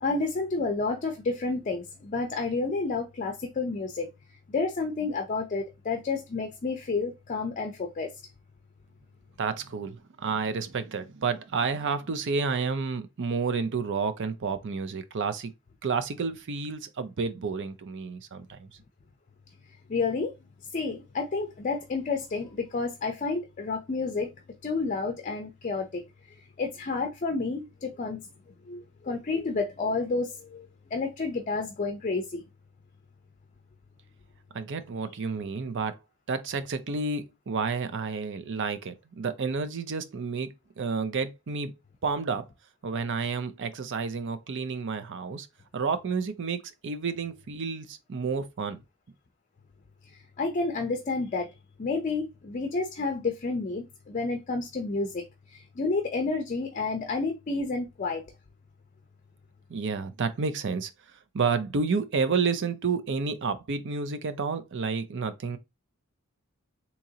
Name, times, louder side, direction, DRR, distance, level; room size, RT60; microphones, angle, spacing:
voice 1, 0.0-4.1 4.5-8.1 19.9-20.3 20.7-24.3 24.6-26.0 26.6-28.3 28.7-32.4 50.4-51.5 51.8-58.2, left 3 dB, 35° left, 0.5 m, -30 dB
voice 2, 9.4-15.5 15.8-18.7 34.5-36.0 36.3-41.8 42.0-42.4 42.8-45.5 45.7-48.8 59.7-65.6, right 5 dB, 55° right, 0.5 m, -30 dB
3.7 x 2.9 x 2.8 m
head